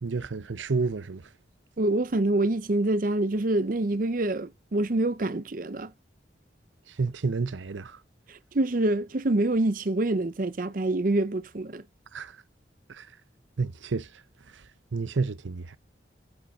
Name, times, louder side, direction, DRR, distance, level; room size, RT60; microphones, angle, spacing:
voice 1, 0.0-1.3 6.9-8.0 12.1-12.4 12.9-13.1 13.6-15.8, right 4 dB, 90° right, 0.7 m, -31 dB
voice 2, 1.8-5.9 8.3-11.8, right 2 dB, 45° right, 0.6 m, -26 dB
10.5 x 8.4 x 2.5 m
head